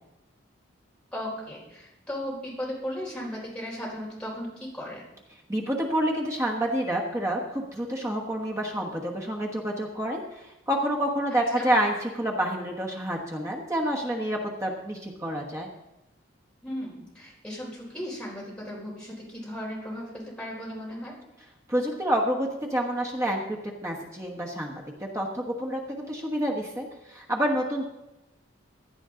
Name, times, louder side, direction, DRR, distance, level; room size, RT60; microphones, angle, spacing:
voice 1, 1.1-5.1 11.6-11.7 16.6-21.2, equal, 5° left, -5 dB, 3.9 m, -36 dB
voice 2, 5.5-15.7 21.7-23.4 23.8-27.9, right 1 dB, 15° right, -1 dB, 1.2 m, -28 dB
16.0 x 10.5 x 3.8 m, 0.94 s
head